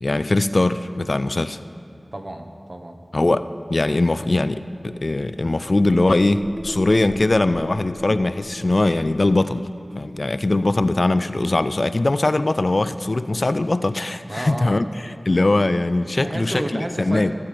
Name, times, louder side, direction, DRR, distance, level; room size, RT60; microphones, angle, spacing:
voice 1, 0.0-1.6 3.1-9.7 10.0-17.3, left 2 dB, 55° left, 12 dB, 0.3 m, -21 dB
voice 2, 2.1-3.0 14.3-14.8 16.2-17.3, right 1 dB, 45° right, 4 dB, 0.9 m, -30 dB
sound 1, 4.6-9.6, equal, ahead, 0.6 m, -38 dB
15.0 x 8.2 x 5.0 m, 2.6 s
wide cardioid pair, 45°, 0 cm